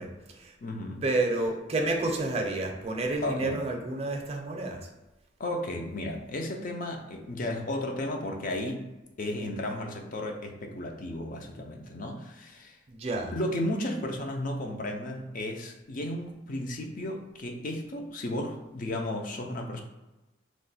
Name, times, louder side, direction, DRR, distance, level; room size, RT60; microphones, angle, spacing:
voice 1, 0.0-0.5 1.0-4.9 12.9-13.3, right 2 dB, 35° right, 2 dB, 0.5 m, -30 dB
voice 2, 0.6-1.0 3.2-3.6 5.4-8.9 9.2-12.8 13.3-19.8, left 1 dB, 45° left, 2 dB, 0.5 m, -34 dB
3.0 x 2.2 x 4.0 m, 1.0 s
head